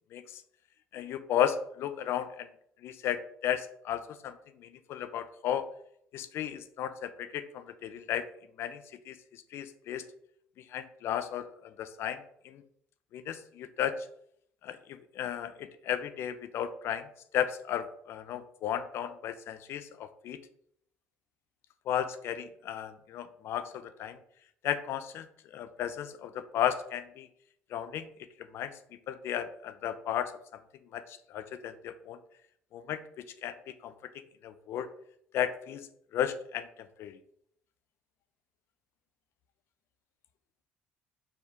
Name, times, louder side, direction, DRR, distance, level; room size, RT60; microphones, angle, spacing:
voice 1, 0.9-2.5 2.8-5.7 6.1-8.3 8.6-9.2 9.5-10.1 10.7-12.6 13.1-13.9 14.6-17.1 17.3-20.4 21.9-24.2 24.6-25.3 25.5-27.3 27.7-28.1 28.5-28.7 29.1-30.6 30.9-32.2 32.7-33.6 33.8-33.9 34.4-34.9 35.3-35.8 36.1-37.2, left 10 dB, 60° left, 11 dB, 0.4 m, -34 dB
4.4 x 2.8 x 3.4 m, 0.69 s
hypercardioid pair, 60°, 5 cm